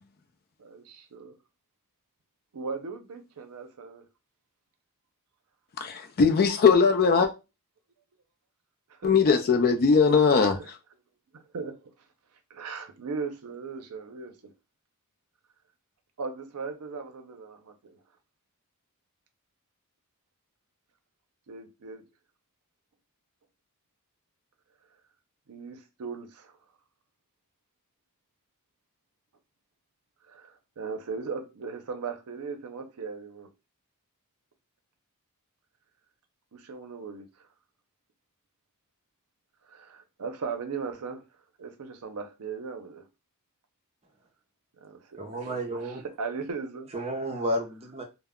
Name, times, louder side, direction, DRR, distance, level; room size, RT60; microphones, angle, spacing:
voice 1, 0.6-1.4 2.5-4.1 8.9-9.1 11.3-11.8 12.5-14.5 16.2-18.0 21.5-22.0 25.5-26.6 30.3-33.5 36.5-37.5 39.7-41.2 41.6-43.0 44.8-45.9 46.2-46.9, right 5 dB, 80° right, 0.5 m, -38 dB
voice 2, 5.8-7.3 9.0-10.8, left 5 dB, 45° left, 0.4 m, -20 dB
voice 3, 45.2-46.0 46.9-48.0, right 1 dB, 30° right, 0.6 m, -31 dB
2.1 x 2.0 x 3.5 m
head